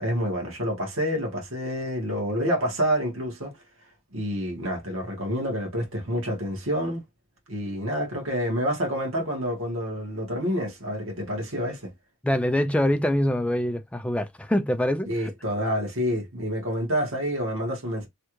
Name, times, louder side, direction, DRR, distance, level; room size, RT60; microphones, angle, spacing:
voice 1, 0.0-3.5 4.1-7.0 7.5-11.9 15.1-18.1, equal, 60° right, 1.5 m, -28 dB
voice 2, 12.2-15.3, left 1 dB, 5° left, 0.3 m, -24 dB
3.3 x 2.4 x 3.0 m
head